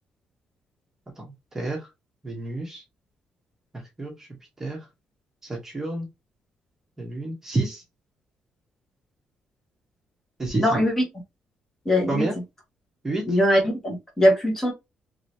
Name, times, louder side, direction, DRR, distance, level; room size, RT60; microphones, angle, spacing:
voice 1, 1.2-1.8 2.2-2.8 4.0-4.3 4.6-4.8 5.4-6.1 7.0-7.8 10.4-10.7 12.1-12.3 13.0-13.4, right 2 dB, 15° right, 1.0 m, -29 dB
voice 2, 10.6-11.0 11.8-12.3 13.3-14.7, equal, 15° left, 1.2 m, -21 dB
3.1 x 2.9 x 2.7 m
cardioid pair, 170°, 3 cm